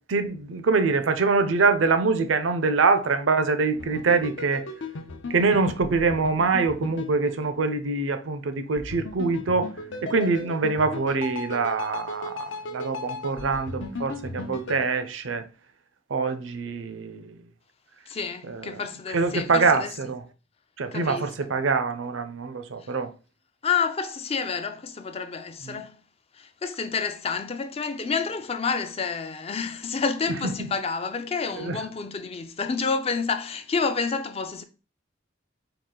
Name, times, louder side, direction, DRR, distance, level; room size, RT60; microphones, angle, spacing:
voice 1, 0.1-4.6 5.3-9.7 10.0-15.4 16.1-17.4 18.5-18.8 19.1-20.2 20.8-23.1 25.7-25.8 30.6-30.7 31.6-31.8, right 4 dB, 80° right, 0.6 m, -24 dB
sound 1, 3.7-8.0 8.8-14.8, left 3 dB, 70° left, 0.6 m, -36 dB
voice 2, 18.1-19.9 20.9-21.3 23.6-26.0 26.4-34.6, left 5 dB, 30° left, 0.4 m, -29 dB
4.8 x 2.4 x 3.7 m
head